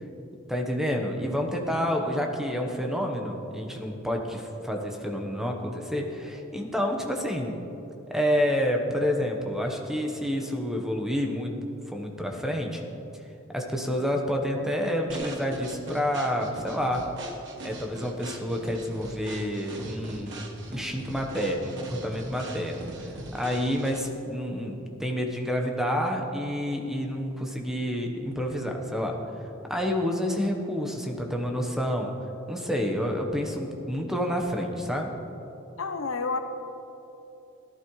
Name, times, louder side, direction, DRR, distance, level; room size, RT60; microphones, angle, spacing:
voice 1, 0.5-7.6 8.1-11.5 11.9-12.8 13.5-17.1 17.6-29.1 29.7-32.1 32.5-35.1, equal, ahead, 2 dB, 1.0 m, -29 dB
sound 1, 15.1-24.2, right 1 dB, 60° right, 1.3 m, -41 dB
voice 2, 35.8-36.4, left 4 dB, 75° left, 7 dB, 0.8 m, -29 dB
17.5 x 11.5 x 3.1 m, 3.0 s
head